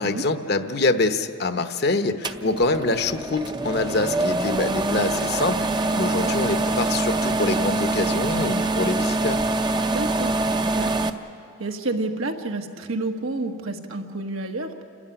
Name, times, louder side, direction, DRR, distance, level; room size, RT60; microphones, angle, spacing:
voice 1, 0.0-5.6 6.0-9.4, left 3 dB, 50° left, 8 dB, 0.9 m, -25 dB
sound 1, 2.2-11.1, right 2 dB, 20° right, 0.6 m, -24 dB
voice 2, 6.0-6.4 9.9-11.0 11.6-14.8, right 2 dB, 80° right, 3 dB, 1.6 m, -30 dB
28.5 x 13.5 x 10.0 m, 2.5 s
head